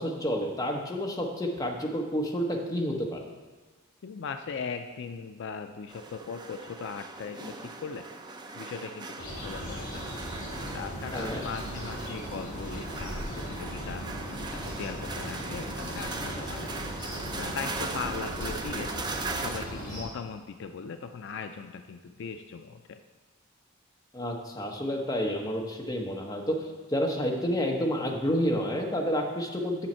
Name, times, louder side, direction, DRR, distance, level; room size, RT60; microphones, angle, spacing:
voice 1, 0.0-3.2 11.1-11.4 24.1-26.6 26.9-29.8, equal, 15° left, 0 dB, 1.0 m, -29 dB
voice 2, 4.0-8.1 8.5-10.0 10.7-14.0 14.5-16.7 17.4-18.9 19.3-23.0, left 5 dB, 55° left, 7 dB, 0.4 m, -39 dB
sound 1, 5.9-19.6, right 3 dB, 20° right, 0.5 m, -39 dB
sound 2, 9.2-20.0, equal, 40° left, 2.9 m, -38 dB
8.8 x 7.1 x 4.4 m, 1.3 s
head